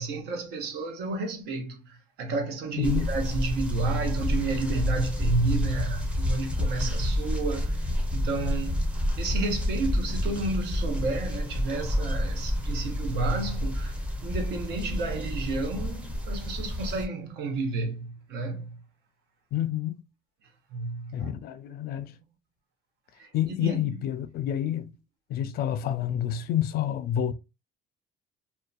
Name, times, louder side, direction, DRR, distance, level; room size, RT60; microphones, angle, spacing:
voice 1, 0.0-7.8 8.1-8.8 9.2-13.9 14.2-18.7 20.7-21.3 23.2-23.3 23.6-23.9, right 3 dB, 75° right, 0.8 m, -31 dB
voice 2, 2.8-3.1 19.5-20.0 21.1-22.1 23.3-24.9 25.3-27.3, left 10 dB, 65° left, 0.4 m, -29 dB
sound 1, 2.8-17.1, left 1 dB, 5° right, 0.5 m, -29 dB
2.7 x 2.2 x 2.3 m
cardioid pair, 110°, 17 cm